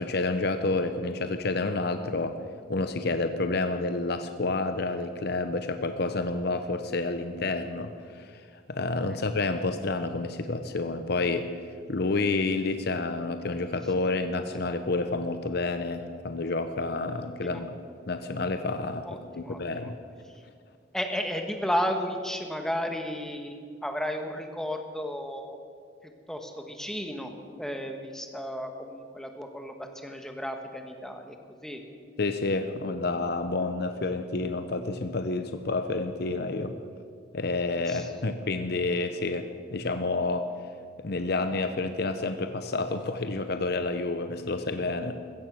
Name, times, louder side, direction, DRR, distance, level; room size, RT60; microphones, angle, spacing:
voice 1, 0.0-2.4 2.7-8.3 8.7-11.5 11.9-17.8 18.1-19.1 19.4-20.0 32.2-36.8 37.3-40.5 41.0-45.1, left 3 dB, 60° left, 9 dB, 0.8 m, -29 dB
voice 2, 19.0-19.9 20.9-25.6 26.0-27.3 27.6-31.4 31.6-31.8 37.9-38.1, equal, 5° left, 4 dB, 1.3 m, -33 dB
16.0 x 14.0 x 6.2 m, 2.1 s
head